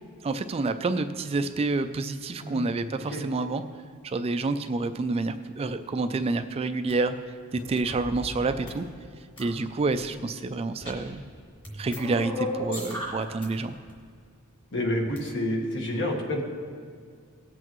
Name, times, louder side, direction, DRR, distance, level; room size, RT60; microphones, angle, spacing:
voice 1, 0.2-3.6 4.0-7.1 7.5-8.9 9.4-11.2 11.8-13.7, right 3 dB, 30° right, 9 dB, 0.3 m, -28 dB
voice 2, 2.4-2.8 3.1-3.2 14.7-16.4, left 1 dB, 60° left, 1 dB, 1.4 m, -29 dB
sound 1, 6.9-7.0 7.5-8.7 9.4-10.0 10.7-11.3 11.6-13.5 13.7-13.9 15.0-15.2, left 1 dB, 25° left, 2.3 m, -35 dB
18.0 x 7.9 x 3.1 m, 2.1 s
head